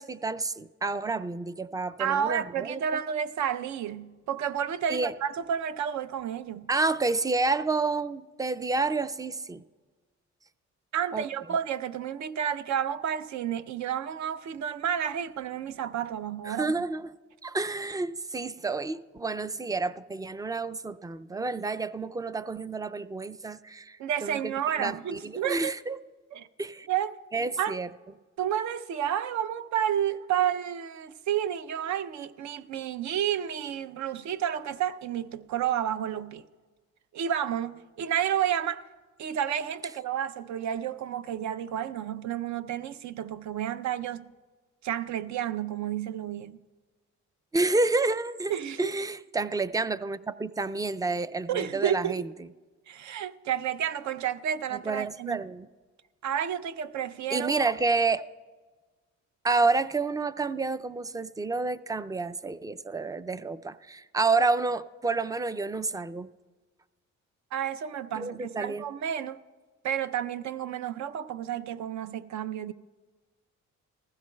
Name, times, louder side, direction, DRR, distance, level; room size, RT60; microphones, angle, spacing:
voice 1, 0.0-3.0 4.9-5.1 6.7-9.6 11.1-11.3 16.4-17.1 17.4-24.5 24.8-26.0 26.6-26.9 27.3-27.9 47.5-52.3 54.7-55.7 57.3-58.2 59.4-66.3 68.1-68.8, right 3 dB, 15° right, 0.3 m, -29 dB
voice 2, 2.0-6.7 10.9-16.7 24.0-25.7 26.3-26.5 26.9-27.2 27.6-27.8 28.4-36.4 37.1-38.8 39.2-44.3 44.8-46.6 48.5-48.9 51.5-52.3 52.9-55.4 56.2-57.6 67.5-69.4 69.8-72.7, right 9 dB, 65° right, 0.6 m, -31 dB
20.0 x 15.5 x 2.2 m
cardioid pair, 90°, 30 cm